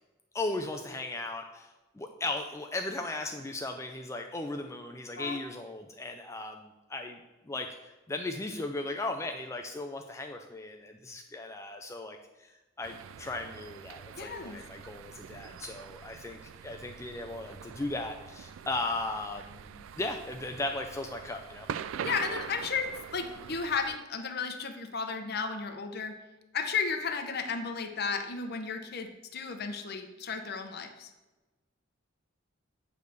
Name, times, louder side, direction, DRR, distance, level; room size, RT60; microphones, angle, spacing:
voice 1, 0.3-1.7 2.0-7.2 7.5-12.5 12.8-21.7, left 2 dB, 15° left, 4 dB, 0.3 m, -37 dB
sound 1, 12.8-24.0, right 8 dB, 70° right, 0.3 m, -44 dB
voice 2, 14.2-14.6 22.0-26.2 26.5-31.1, left 5 dB, 50° left, 5 dB, 0.8 m, -34 dB
8.4 x 3.4 x 6.4 m, 1.1 s
head